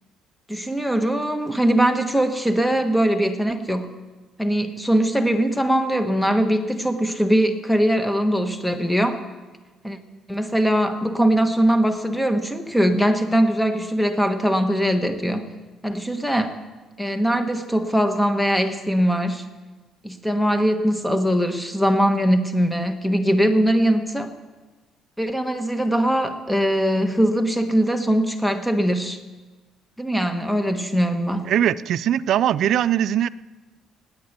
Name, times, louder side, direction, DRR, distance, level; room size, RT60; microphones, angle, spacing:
voice 1, 0.5-3.9 4.4-9.2 9.8-10.0 10.3-15.5 15.8-16.6 17.0-19.4 20.0-24.3 25.2-29.2 30.0-31.5, equal, 5° left, 7 dB, 1.3 m, -21 dB
voice 2, 31.5-33.3, right 10 dB, 65° right, 17 dB, 0.4 m, -20 dB
18.5 x 8.7 x 6.7 m, 1.3 s
cardioid pair, 105°, 0 cm